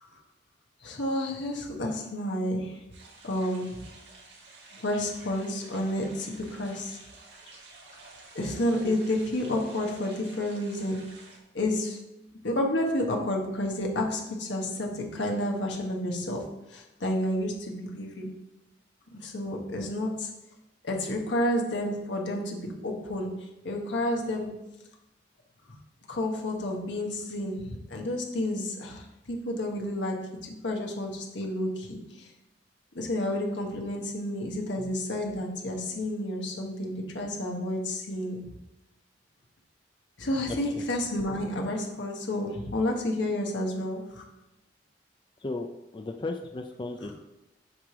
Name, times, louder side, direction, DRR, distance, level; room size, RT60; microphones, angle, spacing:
voice 1, 0.8-2.8 3.2-3.8 4.8-7.0 8.3-11.1 11.5-12.0 12.4-18.3 19.1-20.3 20.8-24.6 26.1-32.3 32.9-38.5 40.2-44.2 47.0-47.1, left 1 dB, 85° left, 0 dB, 1.2 m, -30 dB
sound 1, 2.9-11.4, right 3 dB, 70° right, 1.6 m, -51 dB
voice 2, 45.9-47.2, left 2 dB, 25° left, 4 dB, 0.4 m, -35 dB
7.2 x 3.3 x 5.9 m, 0.94 s
head